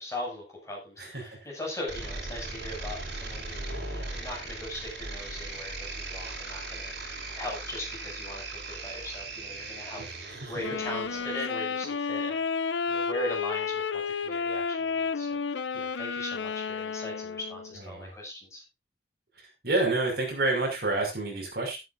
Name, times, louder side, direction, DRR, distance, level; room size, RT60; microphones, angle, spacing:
voice 1, 0.0-18.6, left 1 dB, 15° left, -2 dB, 7.2 m, -39 dB
sound 1, 1.9-11.4, right 2 dB, 75° right, 5.0 m, -38 dB
Wind instrument woodwind instrument, 10.6-17.8, left 5 dB, 90° left, 0.7 m, -31 dB
voice 2, 19.6-21.8, right 2 dB, 60° right, 1 dB, 6.0 m, -27 dB
13.0 x 12.5 x 2.7 m, 0.24 s
head